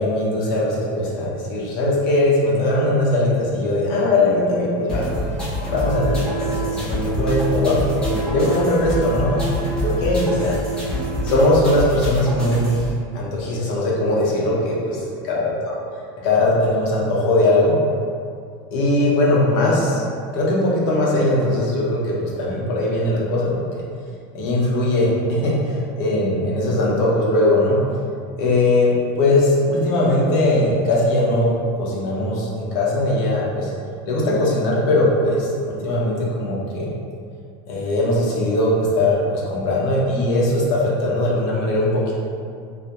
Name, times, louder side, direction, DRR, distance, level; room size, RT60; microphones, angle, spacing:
voice 1, 0.0-5.1 5.6-10.5 11.2-12.9 13.1-15.4 16.2-17.8 18.7-20.0 20.3-23.8 24.3-25.5 25.9-27.8 28.4-31.5 31.7-33.7 34.1-36.9 37.7-42.1, left 1 dB, 55° left, -5 dB, 0.6 m, -20 dB
sound 1, 4.9-12.9, equal, 5° left, 0.4 m, -27 dB
Wind instrument woodwind instrument, 5.7-11.6, right 4 dB, 85° right, 0.6 m, -30 dB
2.2 x 2.0 x 2.7 m, 2.3 s
cardioid pair, 175°, 12 cm